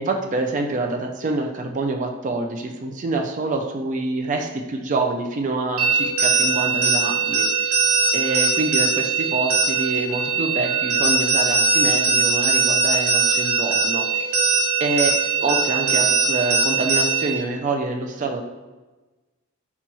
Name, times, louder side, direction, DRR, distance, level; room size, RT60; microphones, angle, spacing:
voice 1, 0.0-7.8 8.1-14.4 14.8-15.1 15.4-18.4, right 2 dB, 35° right, 3 dB, 0.3 m, -26 dB
sound 1, 5.8-17.4, right 4 dB, 90° right, 0.7 m, -20 dB
4.0 x 2.3 x 2.9 m, 1.2 s
head